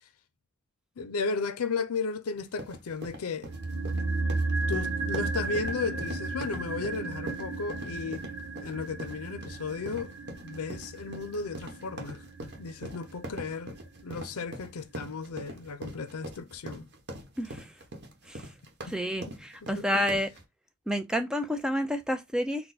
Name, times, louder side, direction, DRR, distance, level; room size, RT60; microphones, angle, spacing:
voice 1, 1.0-3.5 4.7-8.2 8.6-10.2 10.4-12.2 12.6-16.9 19.6-20.0, left 4 dB, 85° left, 0.5 m, -34 dB
sound 1, 2.4-20.4, right 1 dB, 50° right, 1.0 m, -43 dB
sound 2, 3.5-13.7 14.0-14.1, right 3 dB, 75° right, 1.2 m, -34 dB
voice 2, 17.4-17.7 18.3-18.5 18.9-20.3 20.9-22.7, equal, 5° right, 0.4 m, -30 dB
4.2 x 2.1 x 4.0 m
head